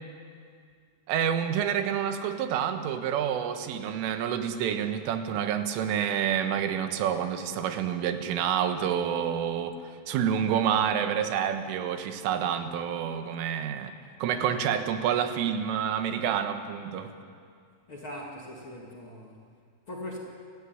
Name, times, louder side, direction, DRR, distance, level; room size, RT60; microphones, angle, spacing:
voice 1, 1.1-9.8 10.1-13.9 14.2-17.1, right 8 dB, 90° right, 8 dB, 3.9 m, -28 dB
voice 2, 17.9-19.4 19.9-20.2, left 1 dB, 35° left, -2 dB, 2.2 m, -40 dB
28.0 x 16.0 x 9.6 m, 2.2 s
omnidirectional pair, 5.6 m